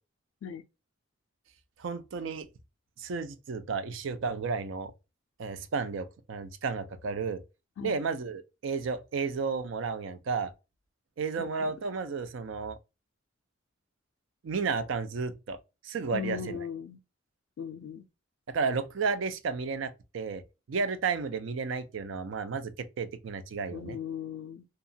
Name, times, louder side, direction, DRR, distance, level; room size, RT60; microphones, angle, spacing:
voice 1, 1.8-2.5 3.0-4.9 5.4-7.4 7.8-10.5 11.2-12.8 14.4-15.6 15.8-16.6 18.5-20.4 20.7-24.0, right 5 dB, 70° right, 0.4 m, -32 dB
voice 2, 11.4-11.7 16.1-17.0 17.6-18.0 23.7-24.7, left 7 dB, 90° left, 0.3 m, -38 dB
2.8 x 2.3 x 2.6 m
head